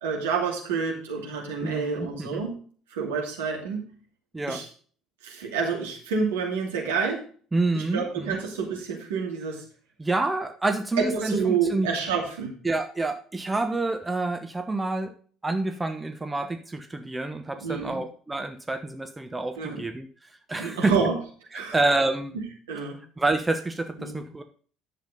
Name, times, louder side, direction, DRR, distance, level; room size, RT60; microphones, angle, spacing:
voice 1, 0.0-2.6 2.9-3.9 4.5-4.7 5.2-7.2 7.7-9.6 11.0-12.6 17.6-18.0 19.6-19.8 20.6-21.2 21.5-21.8 22.3-23.0 24.0-24.2, right 5 dB, 70° right, 0 dB, 2.6 m, -28 dB
voice 2, 1.6-2.4 4.3-4.6 7.5-8.4 10.0-11.9 12.6-15.1 15.4-20.9 21.5-22.3 23.2-24.4, right 2 dB, 15° right, 7 dB, 1.1 m, -28 dB
10.5 x 7.3 x 3.8 m, 0.43 s
figure-of-eight pair, 55°, 0 cm